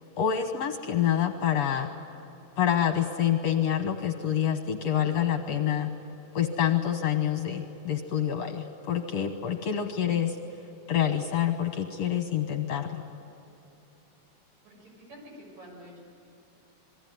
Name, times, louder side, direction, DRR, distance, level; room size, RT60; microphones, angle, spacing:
voice 1, 0.2-1.9 2.6-5.9 6.3-10.4 10.9-13.0, left 9 dB, 60° left, 6 dB, 2.1 m, -27 dB
voice 2, 14.6-16.0, equal, 55° right, 0 dB, 7.8 m, -48 dB
28.0 x 22.0 x 9.4 m, 3.0 s
omnidirectional pair, 3.8 m